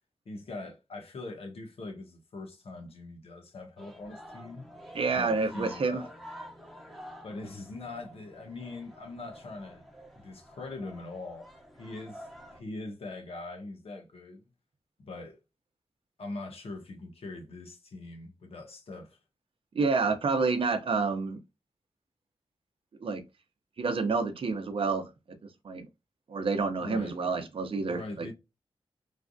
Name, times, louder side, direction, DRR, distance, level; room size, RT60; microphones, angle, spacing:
voice 1, 0.3-4.7 5.1-6.1 7.2-9.8 10.2-11.5 11.8-14.4 15.0-15.4 16.2-19.2 26.8-27.2 27.9-28.3, left 2 dB, 75° left, 0.9 m, -42 dB
sound 1, 3.8-12.6, equal, ahead, 0.9 m, -49 dB
voice 2, 4.9-6.1 19.7-21.4 23.0-23.2 23.8-25.1 25.6-25.9 26.3-28.3, right 4 dB, 65° right, 0.6 m, -28 dB
3.2 x 2.6 x 2.2 m
wide cardioid pair, 85°, 10 cm